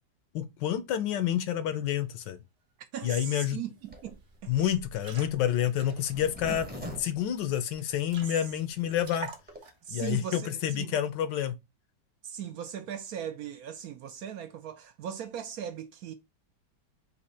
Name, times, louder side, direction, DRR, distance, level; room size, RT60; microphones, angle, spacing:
voice 1, 0.3-2.4 3.0-3.6 4.5-6.7 7.0-9.3 9.9-11.5, left 10 dB, 80° left, 1.3 m, -29 dB
voice 2, 2.9-4.7 8.2-8.4 9.8-11.0 12.2-16.1, right 9 dB, 70° right, 0.8 m, -39 dB
sound 1, 3.2-3.3 3.6-3.9 4.2-4.4 4.8-6.9 7.3-7.4 7.7-7.8 8.1-8.7 9.0-9.9, right 5 dB, 50° right, 1.1 m, -46 dB
Zipper (clothing), 3.9-8.2 8.7-8.8 8.9-9.0 9.3-9.6, left 1 dB, 10° right, 0.6 m, -43 dB
4.2 x 2.7 x 4.1 m
omnidirectional pair, 2.0 m